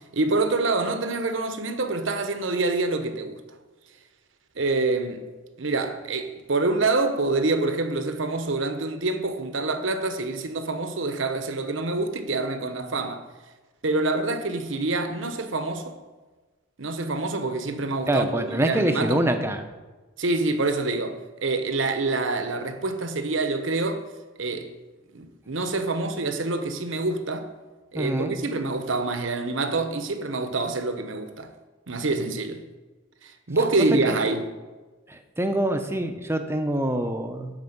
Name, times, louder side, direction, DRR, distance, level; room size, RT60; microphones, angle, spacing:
voice 1, 0.1-3.4 4.6-5.2 5.6-13.3 13.8-16.0 16.8-19.2 20.2-24.0 24.4-24.7 25.1-27.5 27.9-31.5 31.9-32.6 33.2-34.5, right 3 dB, 75° right, 1.1 m, -26 dB
voice 2, 18.1-19.7 27.9-28.3 34.1-34.2 35.1-37.5, right 1 dB, 15° right, 0.8 m, -25 dB
11.5 x 4.9 x 8.0 m
head